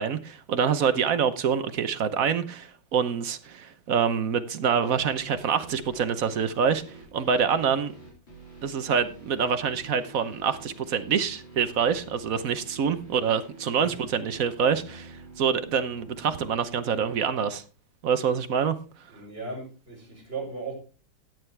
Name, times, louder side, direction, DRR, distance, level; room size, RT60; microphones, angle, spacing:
voice 1, 0.0-6.8 7.1-7.9 8.6-17.6 18.0-18.8, right 7 dB, 55° right, 1.1 m, -26 dB
sound 1, 4.8-17.1, right 2 dB, 75° left, 4.8 m, -47 dB
voice 2, 19.1-20.7, right 3 dB, 30° right, 5.2 m, -37 dB
14.0 x 9.3 x 3.3 m
omnidirectional pair, 2.1 m